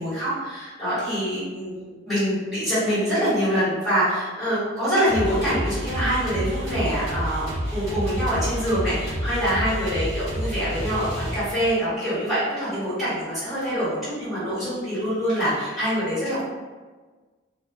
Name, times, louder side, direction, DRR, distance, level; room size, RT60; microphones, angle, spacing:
voice 1, 0.0-16.4, equal, ahead, -14 dB, 1.4 m, -25 dB
sound 1, 5.1-11.8, equal, 35° right, 1.0 m, -29 dB
2.3 x 2.3 x 2.3 m, 1.3 s
head